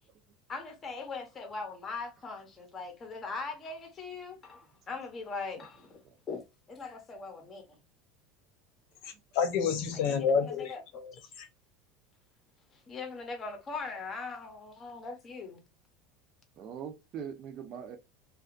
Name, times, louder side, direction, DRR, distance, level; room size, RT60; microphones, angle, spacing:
voice 1, 0.5-6.0 6.3-6.4 6.7-7.6 9.9-10.8 12.9-15.6, left 4 dB, 20° left, 0.8 m, -40 dB
voice 2, 9.0-11.1 11.4-11.5, left 6 dB, 60° left, 0.8 m, -29 dB
voice 3, 16.6-18.0, right 8 dB, 40° right, 0.6 m, -42 dB
2.7 x 2.3 x 2.5 m
supercardioid pair, 150°, 0 cm